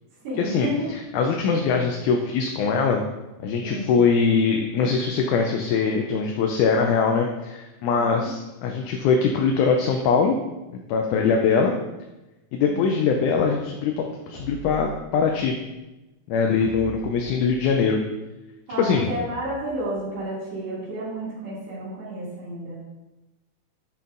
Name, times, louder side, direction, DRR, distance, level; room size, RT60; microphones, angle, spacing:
voice 1, 0.2-0.8 3.6-3.9 8.0-8.3 12.7-13.0 18.7-22.8, right 1 dB, 55° right, -11 dB, 3.5 m, -31 dB
voice 2, 1.1-3.0 3.4-10.3 10.9-11.7 12.5-15.6 16.3-18.0 18.8-19.1, left 5 dB, 80° left, 2 dB, 2.0 m, -22 dB
sound 1, 14.3-15.4 16.6-17.9 18.9-20.1, equal, 55° left, 1.2 m, -42 dB
10.5 x 4.3 x 2.5 m, 1.0 s
omnidirectional pair, 3.6 m